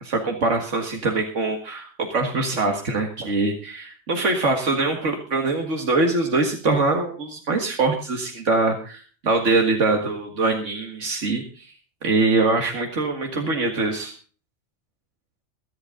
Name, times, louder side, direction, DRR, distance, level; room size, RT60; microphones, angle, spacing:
voice 1, 0.0-11.7 12.0-14.1, right 3 dB, 85° right, 2 dB, 2.2 m, -23 dB
23.0 x 8.2 x 3.8 m, 0.40 s
omnidirectional pair, 1.2 m